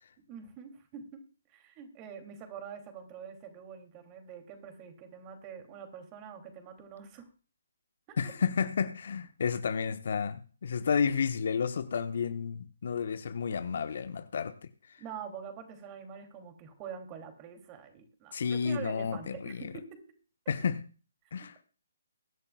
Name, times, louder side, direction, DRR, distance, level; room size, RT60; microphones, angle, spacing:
voice 1, 0.3-1.2 1.5-7.3 8.1-8.3 15.0-20.0 21.4-21.5, right 7 dB, 25° right, 2.8 m, -45 dB
voice 2, 8.2-14.7 18.3-19.7 20.5-20.9 21.3-21.6, left 6 dB, 55° left, 1.0 m, -31 dB
23.0 x 11.0 x 2.3 m
figure-of-eight pair, 140°, 0 cm